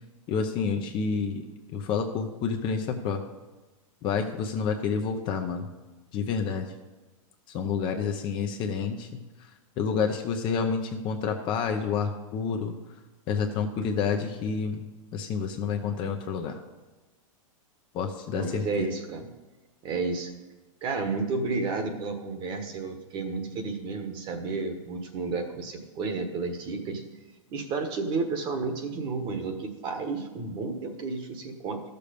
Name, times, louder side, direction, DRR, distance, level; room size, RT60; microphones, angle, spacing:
voice 1, 0.3-1.5 1.7-3.2 4.0-5.7 6.1-6.7 7.5-9.2 9.8-12.8 13.3-14.8 15.1-16.6 17.9-18.9, left 6 dB, 25° left, 5 dB, 0.8 m, -29 dB
voice 2, 18.3-19.3 19.8-20.3 20.8-27.0 27.5-31.8, right 4 dB, 25° right, 6 dB, 1.3 m, -31 dB
13.0 x 6.8 x 5.2 m, 1.2 s
hypercardioid pair, 150°, 18 cm